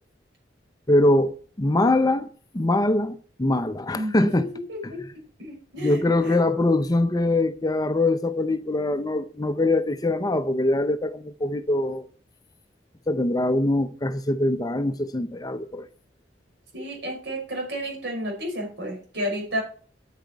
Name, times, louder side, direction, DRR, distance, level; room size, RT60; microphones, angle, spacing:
voice 1, 0.9-2.3 2.5-4.5 4.8-4.9 5.8-12.1 13.1-15.9, left 2 dB, 20° left, 0.6 m, -23 dB
voice 2, 3.9-5.0 5.4-6.4 16.7-19.6, equal, 70° right, 6.2 m, -31 dB
9.2 x 9.0 x 4.7 m
head